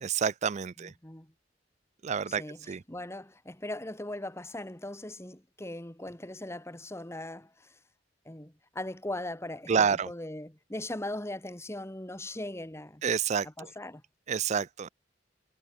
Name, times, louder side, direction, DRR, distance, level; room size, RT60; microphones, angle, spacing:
voice 1, 0.0-0.9 2.0-2.4 2.7-2.8 9.7-10.1 13.0-13.5 14.3-14.9, right 6 dB, 40° right, 0.4 m, -28 dB
voice 2, 0.8-1.3 2.3-7.7 8.3-13.0 13.4-14.0, left 1 dB, 15° left, 1.8 m, -39 dB
head